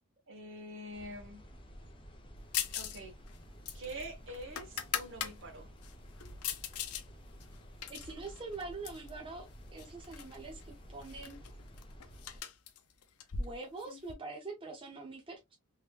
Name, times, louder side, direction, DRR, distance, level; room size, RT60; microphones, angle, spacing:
voice 1, 0.3-1.5 2.7-3.1 3.7-5.7, right 1 dB, 60° right, 1.3 m, -45 dB
sound 1, 0.9-12.4, equal, 25° left, 0.7 m, -52 dB
sound 2, 2.5-3.0 3.3-5.3 5.8-7.0 7.4-9.1 9.8-10.4 10.6-10.7 11.0-14.1, left 8 dB, 80° left, 0.6 m, -40 dB
voice 2, 7.9-11.4 13.4-15.6, right 3 dB, 25° right, 0.7 m, -44 dB
3.7 x 3.0 x 2.4 m
head